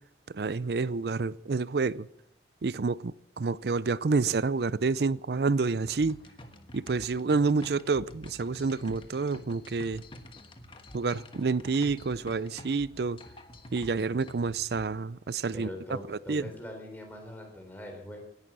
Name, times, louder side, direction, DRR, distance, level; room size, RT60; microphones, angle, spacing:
voice 1, 0.3-2.1 2.6-6.2 6.7-10.0 10.9-13.2 13.7-15.7 16.1-16.4, right 4 dB, 65° right, 0.5 m, -28 dB
sound 1, 5.8-14.9, left 1 dB, 30° left, 1.3 m, -48 dB
voice 2, 15.5-18.3, left 1 dB, 10° left, 3.6 m, -42 dB
18.0 x 11.5 x 6.2 m
head